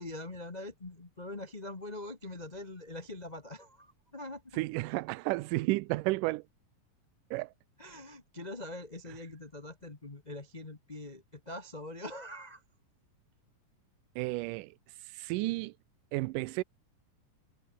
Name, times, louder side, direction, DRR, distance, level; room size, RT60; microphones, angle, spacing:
voice 1, 0.0-4.6 7.8-12.6, left 1 dB, 40° left, 0.6 m, -43 dB
voice 2, 4.5-6.4 7.3-7.5 14.2-15.7 16.1-16.6, right 21 dB, 85° right, 2.2 m, -32 dB
omnidirectional pair, 3.7 m